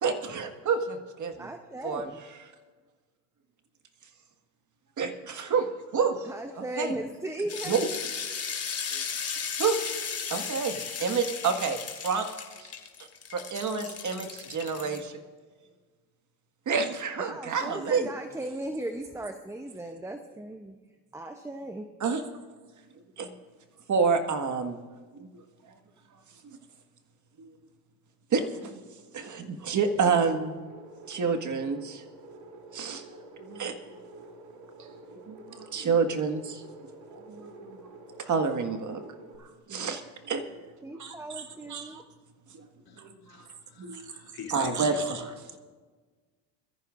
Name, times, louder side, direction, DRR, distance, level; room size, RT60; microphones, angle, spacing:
voice 1, 0.0-1.5 1.8-2.1 5.0-6.3 6.8-6.9 7.7-7.9 8.9-9.0 9.6-9.8 10.3-12.3 12.6-12.7 13.3-15.1 16.6-18.1 22.0-22.2 23.2-23.3 23.9-24.8 25.1-25.3 27.4-27.5 28.3-28.8 29.1-30.7 31.1-32.0 32.7-33.1 33.4-34.0 34.8-34.9 35.3-36.6 37.1-37.8 38.2-39.1 39.4-40.4 41.0-41.4 41.7-42.0 42.6-42.7 43.0-43.1 43.8-44.1 44.5-45.3, right 5 dB, 35° right, 6 dB, 1.7 m, -29 dB
voice 2, 1.3-2.2 6.2-7.8 17.2-20.8 21.1-21.9 40.8-42.0, right 1 dB, 5° right, 6 dB, 0.7 m, -37 dB
sound 1, 7.5-15.0, left 6 dB, 30° left, 2.3 m, -35 dB
sound 2, 30.5-39.4, right 2 dB, 90° right, 2.5 m, -48 dB
voice 3, 42.9-45.2 45.5-45.6, left 7 dB, 45° left, 1 dB, 2.7 m, -45 dB
23.0 x 14.0 x 2.6 m, 1.4 s
supercardioid pair, 95°, 49 cm